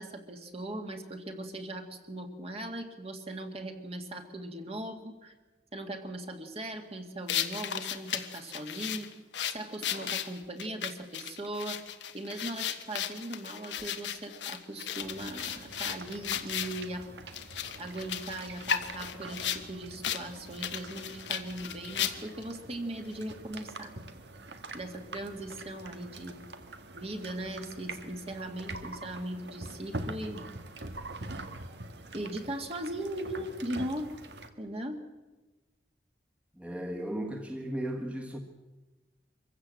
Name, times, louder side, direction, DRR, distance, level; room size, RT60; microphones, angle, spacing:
voice 1, 0.0-5.3 5.7-9.1 9.5-11.8 12.1-17.1 17.8-23.9 24.7-26.4 26.9-30.4 32.1-34.1 34.6-35.0, right 1 dB, 35° right, 4 dB, 2.1 m, -39 dB
sound 1, 7.3-16.8 17.3-19.6 20.0-20.2 20.5-22.4, left 9 dB, 85° left, 1.3 m, -35 dB
sound 2, 15.0-34.5, right 2 dB, 70° right, 1.7 m, -45 dB
voice 2, 36.6-38.4, right 1 dB, 5° right, 2 dB, 1.6 m, -35 dB
24.0 x 15.5 x 7.7 m, 1.2 s
head